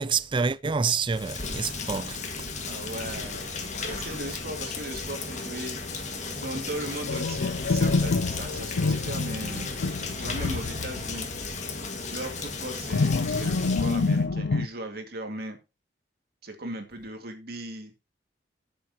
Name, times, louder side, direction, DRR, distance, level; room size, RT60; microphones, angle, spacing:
voice 1, 0.0-2.5, right 5 dB, 25° right, 0.4 m, -28 dB
Rain, 1.0-14.2, left 4 dB, 40° left, 2.0 m, -35 dB
voice 2, 2.6-6.0 6.4-9.7 10.2-11.3 12.1-15.6 16.4-17.9, right 1 dB, 60° right, 2.3 m, -37 dB
sound 1, 5.1-11.3, right 1 dB, 5° left, 4.3 m, -48 dB
sound 2, 7.1-11.4 11.7-11.8 12.9-14.7, left 3 dB, 80° left, 0.5 m, -27 dB
14.0 x 7.0 x 3.0 m
head